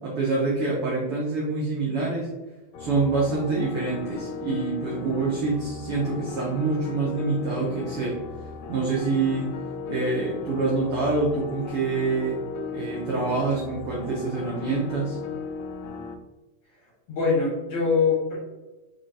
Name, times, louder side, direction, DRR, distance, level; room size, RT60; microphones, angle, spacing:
voice 1, 0.0-2.3 2.8-8.2 8.7-9.5 9.9-12.4 12.7-15.2, right 3 dB, 75° right, -4 dB, 1.3 m, -26 dB
sound 1, 2.7-16.1, left 6 dB, 85° left, 2.1 m, -37 dB
voice 2, 17.1-18.4, left 4 dB, 50° left, -6 dB, 2.0 m, -23 dB
4.5 x 4.2 x 2.7 m, 1.2 s
omnidirectional pair, 3.6 m